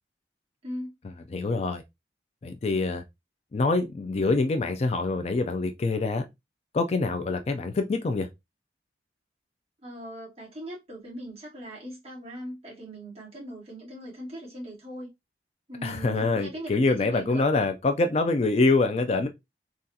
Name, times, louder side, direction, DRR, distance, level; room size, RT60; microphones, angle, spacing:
voice 1, 1.3-1.8 2.4-3.0 3.5-6.2 6.7-8.3 15.8-19.3, left 3 dB, 35° left, 0.4 m, -25 dB
voice 2, 9.8-15.1 15.7-17.5, equal, 35° right, 1.6 m, -40 dB
3.8 x 2.4 x 2.7 m
head